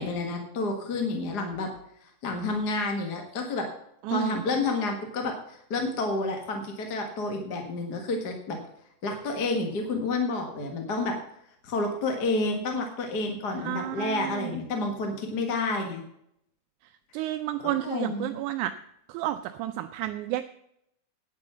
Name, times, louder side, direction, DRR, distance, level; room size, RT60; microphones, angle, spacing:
voice 1, 0.0-1.7 2.0-3.7 4.1-8.6 9.0-11.2 11.6-16.0 17.6-18.4, left 3 dB, 40° left, 3 dB, 1.7 m, -30 dB
voice 2, 4.0-4.4 13.6-14.6 17.1-18.7 19.1-20.4, right 14 dB, 80° right, 9 dB, 2.0 m, -31 dB
9.6 x 8.8 x 7.0 m, 0.76 s
omnidirectional pair, 3.5 m